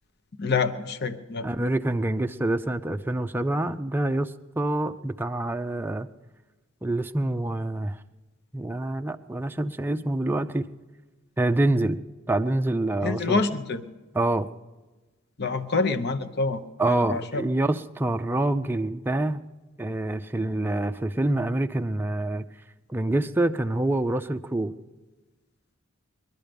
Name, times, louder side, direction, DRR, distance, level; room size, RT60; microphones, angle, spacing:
voice 1, 0.4-1.5 13.0-13.8 15.4-16.6 16.9-17.4, left 4 dB, 55° left, 8 dB, 0.9 m, -26 dB
voice 2, 1.4-6.1 6.8-8.0 8.5-10.7 11.4-12.0 12.3-13.4 14.1-14.5 16.8-19.4 19.8-22.4 22.9-24.8, right 2 dB, 10° right, 7 dB, 0.5 m, -26 dB
21.5 x 12.0 x 5.2 m, 1.2 s
head